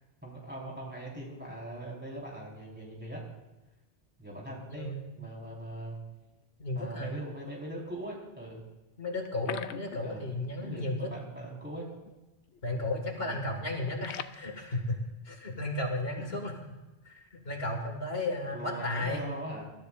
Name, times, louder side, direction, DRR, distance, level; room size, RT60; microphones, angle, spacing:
voice 1, 0.2-3.2 4.2-6.0 6.7-8.6 10.0-10.3 10.6-11.9 13.2-13.4 16.3-16.4 18.5-19.6, right 1 dB, 10° right, -4 dB, 4.3 m, -41 dB
voice 2, 4.7-5.2 6.6-7.1 9.0-11.1 12.6-15.0 15.2-16.5 17.0-19.3, left 2 dB, 65° left, 2 dB, 2.1 m, -34 dB
sound 1, 9.2-10.5 10.7-10.9 11.2-11.3 11.9-12.2 12.4-12.8 13.1-14.4, left 9 dB, 85° left, 0.9 m, -42 dB
27.0 x 13.5 x 2.5 m, 1.1 s
omnidirectional pair, 1.1 m